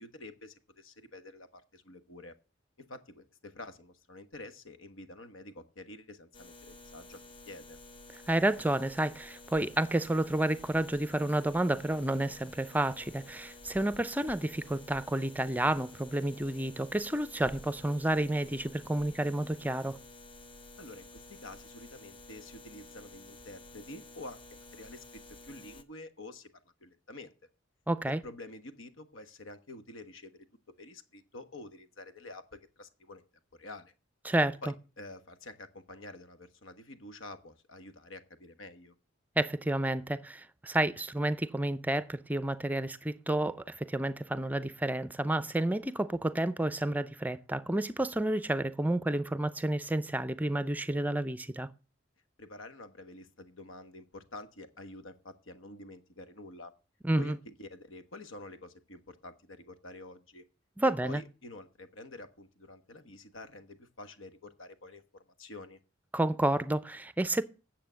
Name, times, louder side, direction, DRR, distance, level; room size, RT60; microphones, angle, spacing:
voice 1, 0.0-2.3 2.8-7.2 7.5-7.8 20.8-26.5 26.8-27.3 28.1-30.3 30.8-33.2 33.6-33.9 34.6-38.9 52.4-56.7 57.2-60.4 60.8-65.8, left 2 dB, 90° left, 1.4 m, -48 dB
sound 1, 6.3-25.8, left 2 dB, 25° left, 0.9 m, -52 dB
voice 2, 8.1-20.0 27.9-28.2 34.2-34.6 39.4-51.7 57.0-57.4 60.8-61.2 66.1-67.4, right 1 dB, 10° right, 0.5 m, -30 dB
9.3 x 7.6 x 7.5 m
head